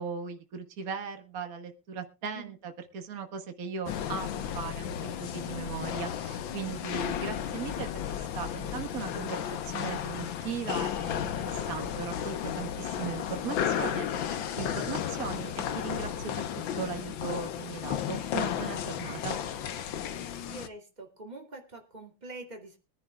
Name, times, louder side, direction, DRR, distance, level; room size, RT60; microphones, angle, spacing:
voice 1, 0.0-16.5 16.8-19.4, right 7 dB, 50° right, 5 dB, 1.8 m, -38 dB
sound 1, 3.9-20.7, left 9 dB, 85° left, 1.8 m, -33 dB
voice 2, 20.5-22.8, right 2 dB, 20° right, 1 dB, 2.6 m, -45 dB
23.5 x 10.5 x 2.3 m, 0.30 s
omnidirectional pair, 2.1 m